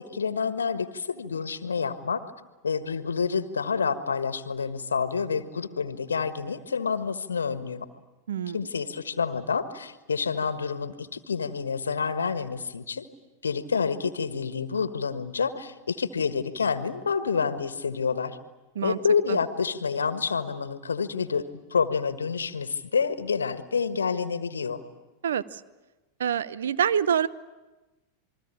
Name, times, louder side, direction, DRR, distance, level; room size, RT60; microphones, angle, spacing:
voice 1, 0.0-2.2 2.6-7.9 8.5-13.0 13.4-18.4 18.8-24.8, left 5 dB, 70° left, 12 dB, 1.5 m, -28 dB
voice 2, 8.3-8.7 18.8-19.0 19.3-19.4 25.2-25.6 26.2-27.3, right 8 dB, 65° right, 16 dB, 0.9 m, -26 dB
28.0 x 21.5 x 8.6 m, 1.1 s
figure-of-eight pair, 90°, 0 cm